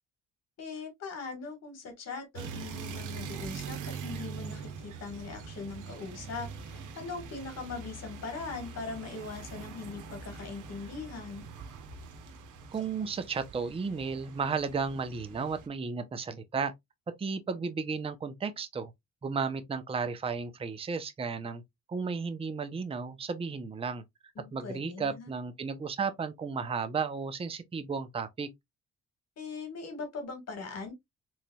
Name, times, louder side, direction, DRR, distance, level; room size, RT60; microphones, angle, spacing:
voice 1, 0.6-11.4 24.3-25.3 29.4-30.9, left 4 dB, 55° left, 1.5 m, -41 dB
sound 1, 2.4-15.7, right 5 dB, 85° right, 0.9 m, -43 dB
voice 2, 12.7-16.7 17.2-18.9 19.2-21.6 21.9-24.0 24.4-28.5, right 5 dB, 20° right, 0.5 m, -34 dB
3.9 x 3.2 x 2.2 m
cardioid pair, 90°, 30 cm